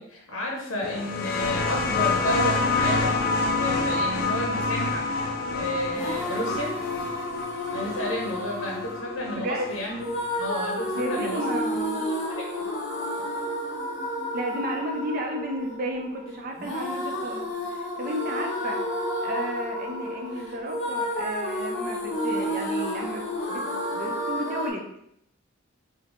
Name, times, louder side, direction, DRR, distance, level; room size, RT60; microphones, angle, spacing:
voice 1, 0.0-3.3 3.6-5.1 5.5-6.7 7.7-10.0 10.4-11.4 12.3-12.5, left 1 dB, 80° left, -1 dB, 0.7 m, -31 dB
sound 1, 0.8-10.1 11.2-11.3, left 3 dB, 45° left, 0.3 m, -27 dB
sound 2, 5.9-24.7, left 1 dB, 30° left, 1.1 m, -31 dB
voice 2, 9.4-9.7 10.9-12.1 14.3-18.8 19.2-24.9, right 1 dB, 45° right, 1 dB, 0.5 m, -33 dB
3.5 x 2.1 x 3.6 m, 0.74 s
head